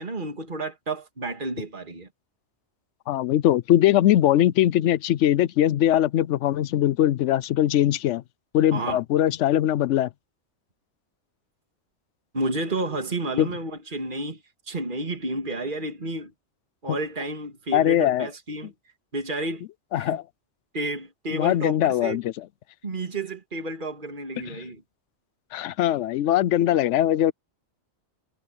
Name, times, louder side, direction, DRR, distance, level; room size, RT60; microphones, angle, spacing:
voice 1, 0.0-2.1 8.7-9.0 12.3-14.4 14.7-16.3 16.8-18.7 19.1-19.6 20.0-20.2 20.7-22.2 22.8-24.8, right 2 dB, 45° right, 2.6 m, -31 dB
voice 2, 3.1-8.2 8.5-10.1 13.4-13.5 17.7-18.3 19.9-20.2 21.3-22.3 24.5-24.6 25.5-27.3, left 12 dB, 90° left, 0.9 m, -21 dB
omnidirectional pair, 1.2 m